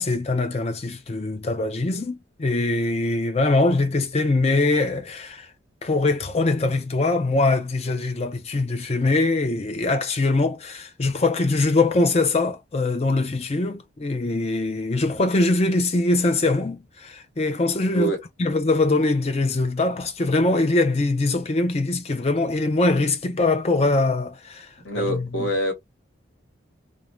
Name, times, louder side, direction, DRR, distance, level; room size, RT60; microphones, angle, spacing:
voice 1, 0.0-5.5 5.8-18.1 18.4-24.7 25.0-25.5, left 2 dB, 30° left, 0.5 m, -22 dB
voice 2, 24.8-25.7, right 1 dB, 70° left, 1.2 m, -25 dB
2.5 x 2.1 x 3.0 m
head